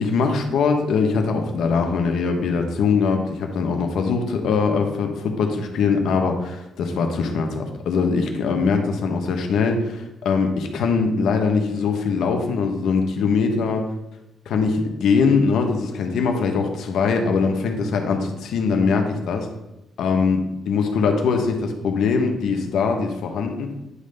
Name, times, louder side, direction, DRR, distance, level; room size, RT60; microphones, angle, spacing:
voice 1, 0.0-13.9 14.5-19.5 20.0-23.7, left 5 dB, 75° left, 4 dB, 1.2 m, -22 dB
9.7 x 3.3 x 5.3 m, 0.94 s
cardioid pair, 90°, 0 cm